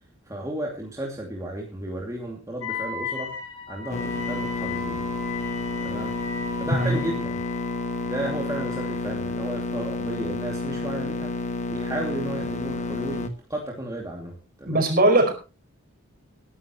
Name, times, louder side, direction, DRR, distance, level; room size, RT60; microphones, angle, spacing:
voice 1, 0.3-3.3 3.7-5.0 5.8-6.2 6.6-7.4 8.1-11.3 11.7-14.3 14.6-14.9, right 1 dB, 15° right, -1 dB, 2.6 m, -33 dB
Wind instrument woodwind instrument, 2.6-9.0, left 5 dB, 80° left, 4.9 m, -36 dB
sound 1, 3.9-13.3, left 3 dB, 35° left, 1.3 m, -30 dB
voice 2, 14.6-15.3, right 1 dB, 45° right, 5 dB, 4.9 m, -19 dB
21.0 x 11.0 x 3.1 m, 0.31 s
head